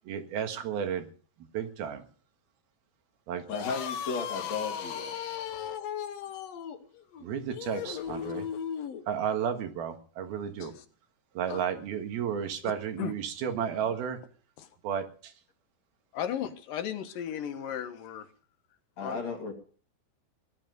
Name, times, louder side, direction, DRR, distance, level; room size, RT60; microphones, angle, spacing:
voice 1, 0.1-1.1 1.5-2.0 3.3-3.5 7.2-8.5 9.1-10.7 11.4-14.2 14.8-15.3, right 8 dB, 70° right, 7 dB, 3.4 m, -32 dB
sound 1, 3.4-9.0, left 8 dB, 90° left, 1.4 m, -36 dB
voice 2, 3.5-5.2 19.0-19.5, left 5 dB, 45° left, 2 dB, 3.4 m, -34 dB
voice 3, 16.1-18.3 19.0-19.2, left 9 dB, 65° left, 9 dB, 2.7 m, -35 dB
19.5 x 12.0 x 5.3 m, 0.42 s
omnidirectional pair, 4.8 m